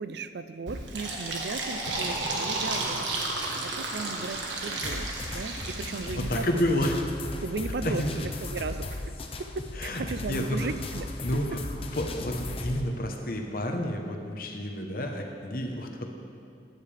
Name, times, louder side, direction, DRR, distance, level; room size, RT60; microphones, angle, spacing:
voice 1, 0.0-3.1 3.6-6.6 7.4-9.1 9.4-11.1, right 4 dB, 70° right, 11 dB, 0.5 m, -36 dB
Fill (with liquid), 0.7-6.4, right 2 dB, 90° right, 1.5 m, -32 dB
Explosion, 1.8-3.4, equal, 90° left, 1.3 m, -46 dB
sound 1, 4.8-12.8, left 2 dB, 30° left, 0.6 m, -37 dB
voice 2, 6.2-7.0 7.8-8.2 9.8-10.0 10.3-10.7 11.2-11.6 12.0-16.1, left 1 dB, 50° left, 3 dB, 1.0 m, -30 dB
15.5 x 9.4 x 3.4 m, 2.5 s
head